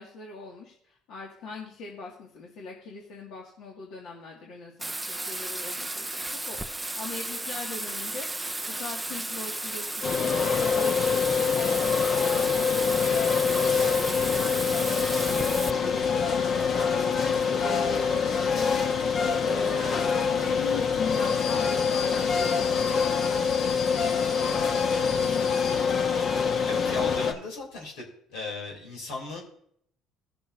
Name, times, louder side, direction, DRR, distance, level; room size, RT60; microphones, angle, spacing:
voice 1, 0.0-8.3 8.8-18.9 19.4-23.1 25.2-25.5, left 3 dB, 70° left, -2 dB, 1.9 m, -41 dB
Bathtub (filling or washing), 4.8-15.7, right 2 dB, 10° right, 0.4 m, -34 dB
sound 1, 10.0-27.3, left 6 dB, 50° left, 1.1 m, -25 dB
voice 2, 24.4-24.7 26.6-28.1 28.3-29.4, left 3 dB, 90° left, -1 dB, 3.1 m, -36 dB
18.5 x 6.9 x 2.6 m, 0.69 s
supercardioid pair, 85°, 0 cm